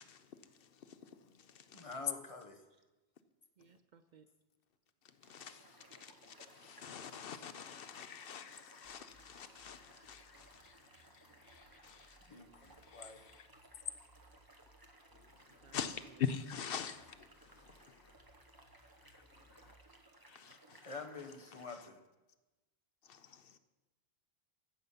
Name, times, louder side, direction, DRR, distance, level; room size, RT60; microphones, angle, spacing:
voice 1, 0.0-1.9 5.0-12.2 12.6-13.5 15.1-18.1 19.1-19.2 19.5-19.7 20.3-20.9 21.7-21.8 23.0-23.6, left 7 dB, 70° left, 0.8 m, -45 dB
voice 2, 1.7-2.6 12.3-13.2 20.8-22.0, left 3 dB, 35° left, 1.0 m, -47 dB
voice 3, 3.6-4.3 15.5-16.2, right 7 dB, 55° right, 0.6 m, -63 dB
sound 1, 5.2-21.7, right 2 dB, 20° right, 1.0 m, -62 dB
sound 2, 8.8-19.9, equal, 85° left, 3.5 m, -68 dB
15.0 x 6.8 x 5.5 m
omnidirectional pair, 1.0 m